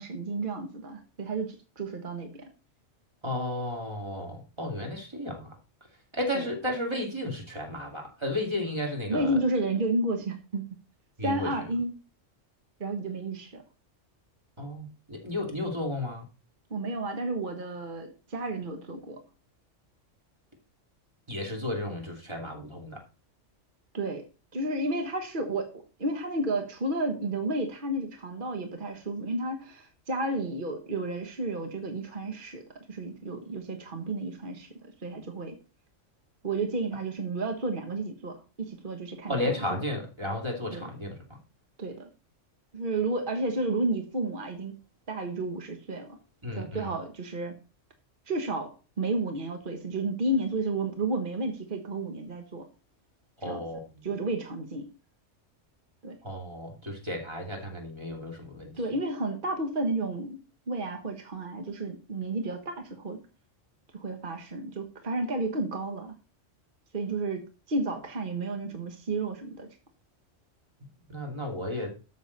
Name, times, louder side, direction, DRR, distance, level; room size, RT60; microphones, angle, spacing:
voice 1, 0.0-2.4 6.3-6.5 9.1-10.6 11.2-11.9 12.8-13.6 16.7-19.2 23.9-24.2 24.5-25.7 26.0-32.6 32.9-35.6 36.4-39.5 40.7-40.8 41.8-42.1 42.7-44.7 45.1-46.2 46.5-47.5 48.3-52.6 53.4-53.6 54.0-54.9 56.0-56.2 58.8-60.4 60.7-63.2 63.9-66.1 66.9-69.7, right 2 dB, 45° right, 5 dB, 1.4 m, -32 dB
voice 2, 3.2-5.5 6.1-9.4 11.2-11.5 14.6-16.2 21.3-23.0 39.3-41.2 46.4-46.9 53.4-54.0 56.2-58.8 71.1-71.9, left 1 dB, 20° right, 1 dB, 2.7 m, -33 dB
13.0 x 6.6 x 4.0 m, 0.34 s
omnidirectional pair, 1.3 m